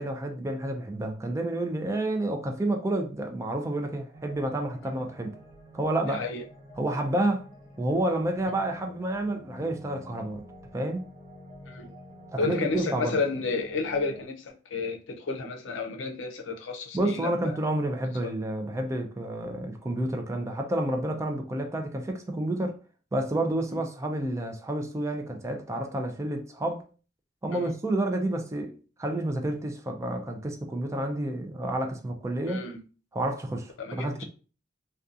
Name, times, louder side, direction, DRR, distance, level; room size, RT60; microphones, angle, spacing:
voice 1, 0.0-5.4 5.7-6.2 6.8-7.5 7.8-10.4 10.7-11.1 12.3-13.2 16.9-22.8 23.1-26.8 27.4-32.7 33.1-34.2, right 1 dB, 15° right, 0.3 m, -29 dB
sound 1, 4.1-14.3, equal, 50° right, 0.7 m, -49 dB
voice 2, 6.0-6.4 11.7-11.9 12.4-17.6 18.2-18.3 23.7-23.8 27.5-27.7 32.5-32.8 33.8-34.2, left 4 dB, 90° left, 0.5 m, -31 dB
2.6 x 2.2 x 2.4 m
head